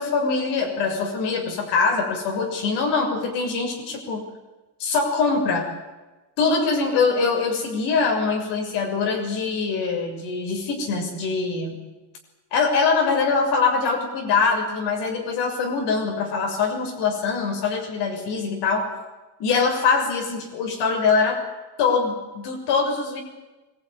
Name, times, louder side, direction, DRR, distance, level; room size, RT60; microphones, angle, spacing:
voice 1, 0.0-4.2 4.8-5.7 6.4-11.8 12.5-18.9 19.4-21.4 21.8-23.2, left 4 dB, 80° left, 3 dB, 6.7 m, -23 dB
25.0 x 20.5 x 9.9 m, 1.1 s
cardioid pair, 165°, 41 cm